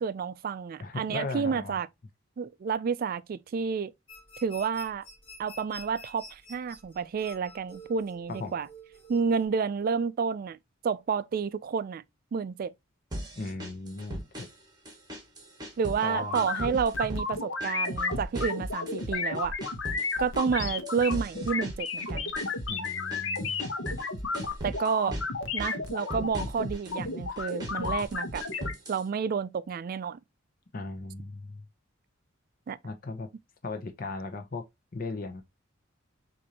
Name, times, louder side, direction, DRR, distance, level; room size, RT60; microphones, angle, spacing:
voice 1, 0.0-1.9 2.4-3.9 4.4-5.1 5.4-8.7 9.1-10.6 10.8-12.0 12.3-12.7 15.8-19.6 20.2-22.3 24.6-25.2 25.5-28.4 28.9-30.2 32.7-32.8, right 6 dB, 45° right, 0.3 m, -30 dB
voice 2, 0.8-1.8 8.3-8.5 13.4-14.5 16.0-16.4 22.7-23.7 30.7-31.6 32.8-33.3 33.6-34.7 34.9-35.4, left 3 dB, 45° left, 0.7 m, -37 dB
sound 1, 4.1-9.5, left 1 dB, 30° left, 1.4 m, -49 dB
sound 2, 13.1-14.6 14.9-16.1 16.3-17.3 17.6-19.1 19.3-24.1 24.3-25.3 25.6-27.0 27.4-29.1, equal, 20° right, 1.4 m, -39 dB
sound 3, 16.1-28.7, left 3 dB, 75° left, 0.9 m, -33 dB
6.2 x 2.6 x 2.8 m
head